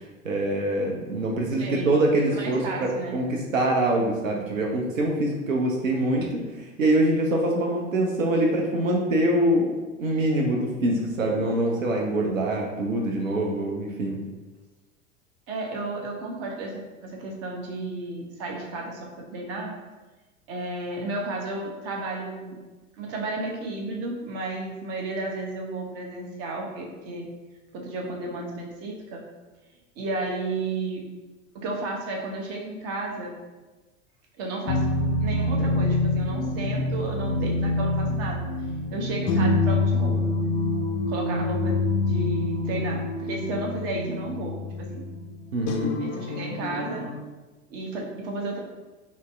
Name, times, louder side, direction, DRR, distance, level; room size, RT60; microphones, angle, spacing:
voice 1, 0.2-6.4 6.8-9.7 10.0-14.2 45.5-46.0, right 1 dB, 80° right, 0 dB, 0.6 m, -24 dB
voice 2, 1.6-1.9 2.3-3.2 15.5-19.7 20.5-22.6 23.0-27.3 27.7-29.2 30.0-31.0 31.5-33.3 34.4-34.9 35.2-38.5 38.9-40.2 41.1-45.0 46.0-47.0 47.7-48.6, right 2 dB, 40° right, 0 dB, 0.8 m, -33 dB
sound 1, 34.7-47.2, left 2 dB, 50° left, 0.5 m, -26 dB
3.9 x 2.0 x 3.4 m, 1.2 s
figure-of-eight pair, 80°, 39 cm